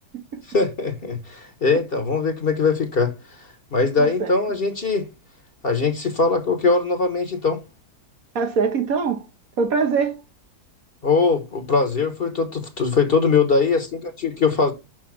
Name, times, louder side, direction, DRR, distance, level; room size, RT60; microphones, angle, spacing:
voice 1, 0.5-5.1 5.6-7.6 11.0-14.7, left 4 dB, 40° left, 1.2 m, -21 dB
voice 2, 4.0-4.4 8.3-9.3 9.6-10.2, right 5 dB, 65° right, 1.3 m, -23 dB
6.2 x 5.6 x 5.8 m
omnidirectional pair, 1.7 m